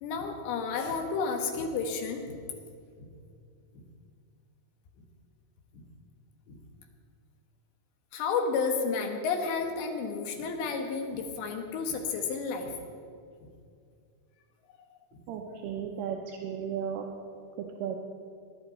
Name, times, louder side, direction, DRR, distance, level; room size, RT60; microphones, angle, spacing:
voice 1, 0.0-2.3 3.0-3.1 3.7-3.8 5.7-5.8 6.5-6.6 8.1-12.8 13.4-13.5, left 5 dB, 80° left, 4 dB, 3.5 m, -31 dB
voice 2, 15.3-17.1 17.8-18.0, right 8 dB, 80° right, 1 dB, 2.7 m, -34 dB
20.5 x 11.0 x 4.3 m, 2.3 s
omnidirectional pair, 5.0 m